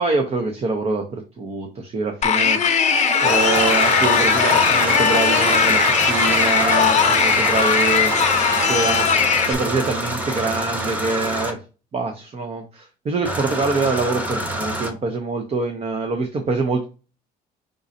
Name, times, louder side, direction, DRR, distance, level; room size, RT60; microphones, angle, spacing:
voice 1, 0.0-2.8 3.2-9.1 9.5-11.6 11.9-16.8, right 3 dB, 35° right, 5 dB, 0.8 m, -25 dB
sound 1, 2.2-9.5, left 8 dB, 40° left, 0.7 m, -19 dB
Applause, 2.8-9.8, right 3 dB, 85° right, 2.5 m, -26 dB
sound 2, 3.2-11.5 13.2-14.9, right 1 dB, 10° right, 1.2 m, -27 dB
5.2 x 3.8 x 2.7 m, 0.33 s
cardioid pair, 110°, 17 cm